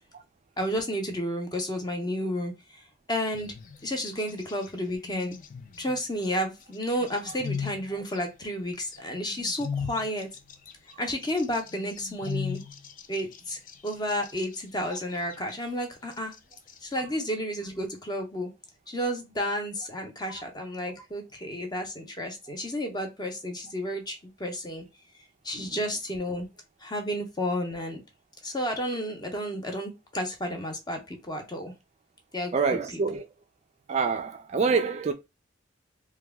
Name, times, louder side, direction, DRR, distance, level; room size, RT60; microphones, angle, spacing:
voice 1, 0.6-2.5 3.1-3.5 3.8-5.4 5.8-10.3 11.0-12.6 13.1-16.3 16.8-18.5 18.9-24.8 25.4-26.5 26.8-28.0 28.4-31.7 32.3-32.5, equal, 20° left, 0.7 m, -31 dB
sound 1, 3.2-3.9 4.2-4.7 5.0-6.3 6.7-8.2 8.8-14.6 14.9-15.6 16.1-17.0, left 6 dB, 45° left, 0.3 m, -38 dB
voice 2, 32.5-33.3 33.9-35.1, right 5 dB, 35° right, 0.3 m, -26 dB
2.9 x 2.2 x 3.4 m
head